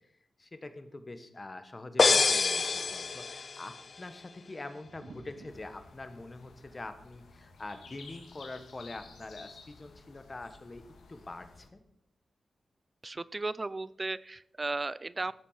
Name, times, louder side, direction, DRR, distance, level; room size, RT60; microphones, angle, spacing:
voice 1, 0.4-11.8, left 2 dB, 30° left, 9 dB, 1.3 m, -44 dB
sound 1, 2.0-3.8, left 4 dB, 45° left, 0.4 m, -26 dB
sound 2, 4.8-5.7 6.9-7.0 7.7-8.2, right 3 dB, 85° right, 2.2 m, -53 dB
sound 3, 5.5-11.7, left 4 dB, 85° left, 1.9 m, -54 dB
voice 2, 13.0-15.3, right 3 dB, 25° right, 19 dB, 0.4 m, -35 dB
13.5 x 7.5 x 5.8 m, 0.75 s
wide cardioid pair, 115°, 0 cm